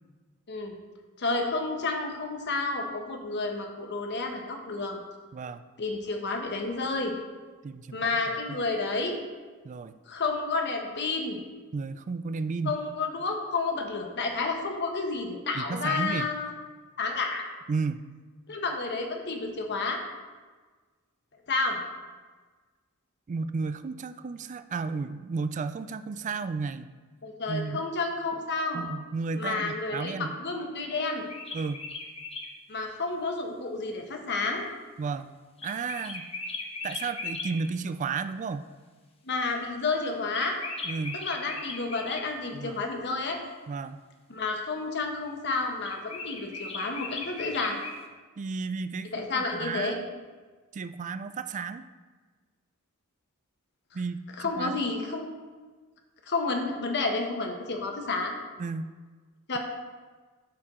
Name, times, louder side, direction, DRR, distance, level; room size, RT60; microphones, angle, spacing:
voice 1, 1.2-5.0 5.8-7.1 7.9-9.2 10.1-11.4 12.7-16.5 17.0-17.5 18.5-20.0 21.5-21.8 27.2-28.8 29.4-31.2 32.7-34.7 39.2-40.6 41.1-43.4 44.3-47.8 49.1-50.0 54.4-55.3 56.3-58.3 59.5-59.6, left 3 dB, 55° left, 3 dB, 1.1 m, -30 dB
voice 2, 5.3-5.6 7.6-8.0 8.5-8.6 9.6-9.9 11.7-12.8 15.5-16.3 17.7-18.1 23.3-26.9 27.5-27.9 28.7-30.4 31.5-31.9 35.0-35.3 35.6-36.3 36.8-38.6 40.8-41.2 42.5-42.8 43.7-44.0 48.4-50.2 50.7-51.9 53.9-54.8 58.6-58.9, right 4 dB, 35° right, 12 dB, 0.3 m, -33 dB
sound 1, 31.0-32.5 35.6-37.5 40.3-42.3 45.8-48.0, left 3 dB, 25° left, 0.9 m, -37 dB
12.5 x 4.6 x 3.7 m, 1.4 s
head